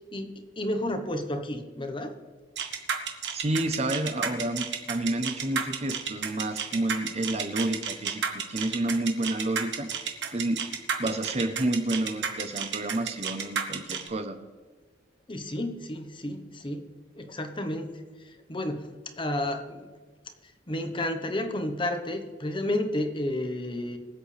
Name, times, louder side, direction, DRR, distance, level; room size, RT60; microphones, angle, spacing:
voice 1, 0.1-2.2 15.3-16.9 17.2-19.9 20.4-24.0, left 1 dB, 30° left, 6 dB, 1.1 m, -32 dB
sound 1, 2.6-14.1, right 7 dB, 75° right, 1.4 m, -31 dB
voice 2, 3.3-9.9 10.3-14.4, right 1 dB, 35° right, 8 dB, 0.8 m, -30 dB
23.0 x 8.0 x 3.4 m, 1.4 s
head